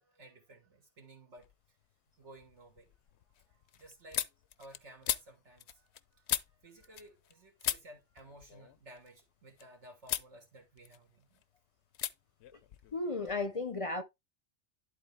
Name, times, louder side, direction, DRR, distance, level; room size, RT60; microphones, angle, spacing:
voice 1, 0.0-1.5 2.2-2.9 3.5-4.2 4.6-11.4, right 1 dB, 85° right, 2.5 m, -56 dB
sound 1, 1.4-1.9 2.3-7.3 7.6-9.6 10.0-10.3 10.7-11.4 11.9-12.1 12.4-13.5, left 11 dB, 75° left, 0.8 m, -39 dB
voice 2, 12.9-14.0, left 3 dB, 40° left, 0.6 m, -34 dB
11.0 x 3.8 x 3.5 m
omnidirectional pair, 1.2 m